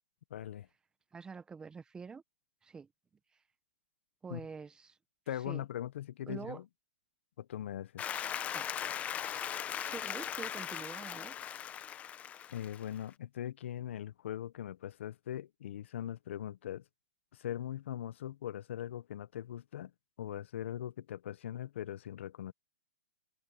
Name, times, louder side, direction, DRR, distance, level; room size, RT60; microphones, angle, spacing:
voice 1, 0.3-0.7 4.3-4.4 5.3-6.6 7.4-8.0 12.5-16.8 17.3-19.9 20.2-22.5, left 11 dB, 65° left, 1.3 m, -40 dB
voice 2, 1.1-2.2 2.6-2.9 4.2-5.0 5.5-5.6 6.3-6.6 8.5-8.7 9.2-9.4 9.8-11.4, right 5 dB, 10° right, 1.0 m, -46 dB
Applause, 8.0-13.0, left 10 dB, 20° left, 1.0 m, -39 dB
hypercardioid pair, 140°, 7 cm